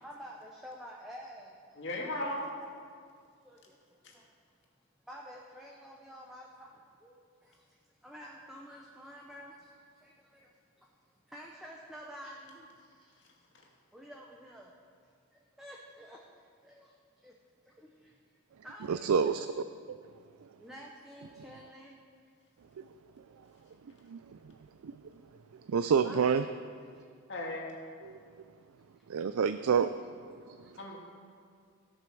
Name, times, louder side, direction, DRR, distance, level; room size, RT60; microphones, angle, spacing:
voice 1, 0.0-1.5 3.4-3.8 4.1-4.2 5.1-7.6 8.0-9.6 10.0-10.5 11.3-13.1 13.9-14.7 15.6-16.2 16.6-16.9 17.2-17.3 17.8-18.1 18.6-19.4 20.6-22.0 26.0-26.3 30.5-30.6, equal, ahead, -2 dB, 0.9 m, -49 dB
voice 2, 1.8-2.5 4.0-4.1 27.3-27.7 30.8-31.0, left 1 dB, 55° left, -2 dB, 2.3 m, -36 dB
voice 3, 18.9-19.5 19.9-20.0 24.1-24.2 24.8-24.9 25.7-26.4 28.0-28.2 29.1-29.9, right 6 dB, 85° right, 11 dB, 0.4 m, -27 dB
16.5 x 8.3 x 6.1 m, 2.1 s
head